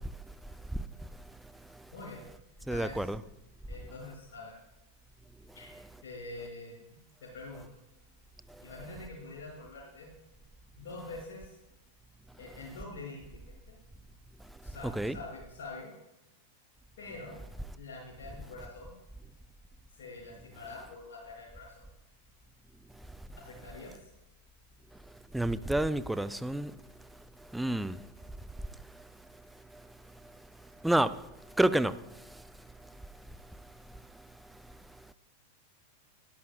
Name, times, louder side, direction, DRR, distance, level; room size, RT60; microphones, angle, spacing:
voice 1, 1.9-2.2 2.6-3.1 3.7-4.5 5.5-6.8 7.2-7.7 8.6-10.1 10.7-11.6 12.4-13.4 14.6-15.9 17.0-17.4 17.8-18.9 19.9-21.8 23.4-24.1, left 3 dB, 55° left, 5.7 m, -45 dB
voice 2, 2.7-3.2 14.8-15.2 25.3-26.7 27.5-28.0 30.8-31.2 31.6-32.0, right 1 dB, 5° right, 0.5 m, -28 dB
22.0 x 13.5 x 2.3 m
figure-of-eight pair, 90°, 0 cm